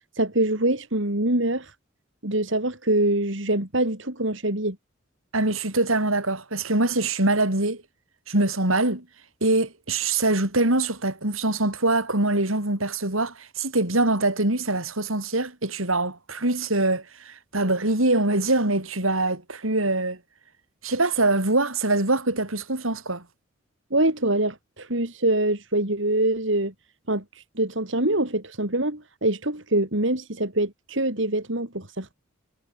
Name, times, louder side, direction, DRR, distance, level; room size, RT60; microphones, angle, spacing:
voice 1, 0.2-1.7 2.2-4.8 23.9-26.7 27.1-32.1, right 1 dB, 65° right, 4.6 m, -24 dB
voice 2, 5.3-7.8 8.3-9.0 9.4-20.2 20.8-23.2, right 2 dB, 85° right, 6.3 m, -23 dB
head